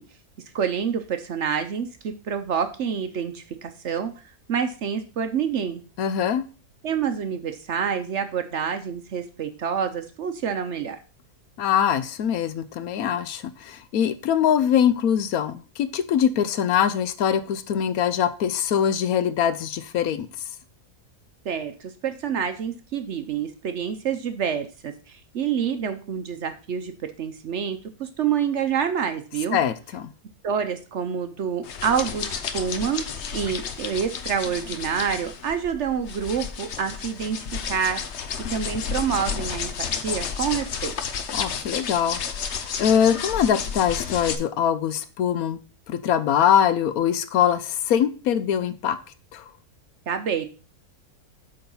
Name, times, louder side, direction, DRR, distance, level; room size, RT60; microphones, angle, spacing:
voice 1, 0.5-4.2 4.5-5.8 6.8-11.0 21.4-29.6 30.4-33.1 33.3-38.0 38.5-41.0 50.1-50.4, right 7 dB, 60° right, 8 dB, 0.9 m, -27 dB
voice 2, 6.0-6.5 11.6-20.3 29.5-30.1 41.3-45.6 45.9-49.0 49.3-49.4, left 9 dB, 75° left, 13 dB, 1.1 m, -23 dB
sound 1, 31.6-44.3, left 6 dB, 55° left, 0.9 m, -32 dB
8.4 x 4.0 x 5.3 m, 0.36 s
omnidirectional pair, 1.6 m